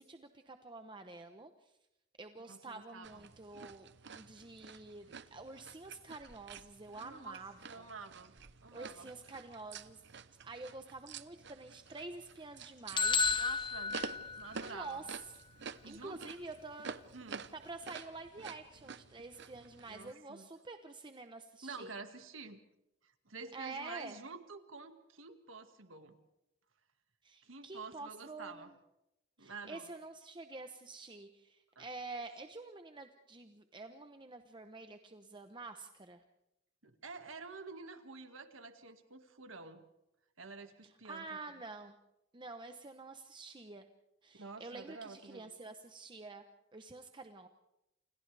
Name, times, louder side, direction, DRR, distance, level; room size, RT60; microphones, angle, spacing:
voice 1, 0.0-1.7 2.2-3.9 4.1-7.5 7.8-7.9 8.7-10.0 10.4-13.3 14.6-15.1 15.8-17.0 17.5-21.9 23.5-24.2 27.2-28.7 29.4-36.2 41.1-41.9 42.3-43.8 44.2-46.4 46.7-47.5, right 3 dB, 25° right, 7 dB, 0.9 m, -48 dB
voice 2, 2.4-3.3 7.0-8.3 8.6-9.1 13.3-15.1 15.8-16.4 17.1-17.4 19.9-20.5 21.6-22.6 23.0-26.2 27.4-28.7 29.4-29.9 31.8-31.9 36.8-39.9 40.4-41.4 44.3-45.5, right 4 dB, 90° right, 7 dB, 2.0 m, -49 dB
sound 1, 3.0-20.1, right 5 dB, 60° right, 0.8 m, -50 dB
sound 2, 13.0-14.9, left 4 dB, 25° left, 0.7 m, -32 dB
29.5 x 27.5 x 3.4 m, 0.89 s
head